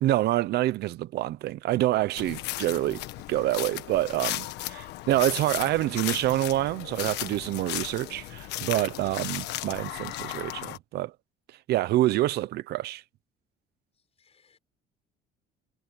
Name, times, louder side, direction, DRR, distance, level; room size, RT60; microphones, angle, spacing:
voice 1, 0.0-3.0 3.3-11.1 11.7-13.0, right 15 dB, 75° right, 0.9 m, -27 dB
sound 1, 2.2-10.8, left 16 dB, 85° left, 1.4 m, -35 dB
voice 2, 9.0-9.4 14.2-14.6, left 6 dB, 35° left, 6.7 m, -57 dB
cardioid pair, 110°, 17 cm